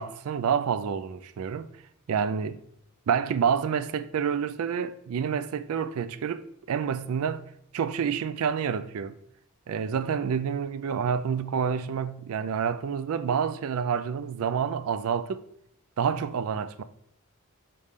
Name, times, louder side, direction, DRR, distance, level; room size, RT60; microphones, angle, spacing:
voice 1, 0.0-1.7 2.1-2.6 3.1-7.4 7.7-9.1 9.7-15.4 16.0-16.8, right 7 dB, 70° right, 0.4 m, -28 dB
6.5 x 4.2 x 3.5 m
head